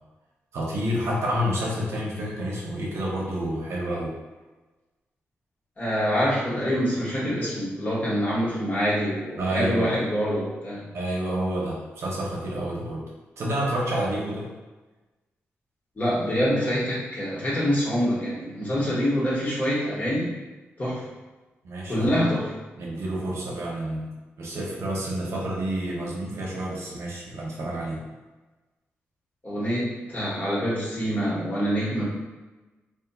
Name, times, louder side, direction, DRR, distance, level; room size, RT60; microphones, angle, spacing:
voice 1, 0.5-4.1 9.4-9.9 10.9-13.0 13.4-14.5 21.6-22.1 22.8-28.0, right 1 dB, 70° right, -4 dB, 0.7 m, -29 dB
voice 2, 5.8-10.8 16.0-20.3 20.8-21.0 21.9-22.5 29.4-32.0, equal, 35° left, -7 dB, 1.2 m, -25 dB
2.7 x 2.4 x 2.3 m, 1.2 s
cardioid pair, 55°, 5 cm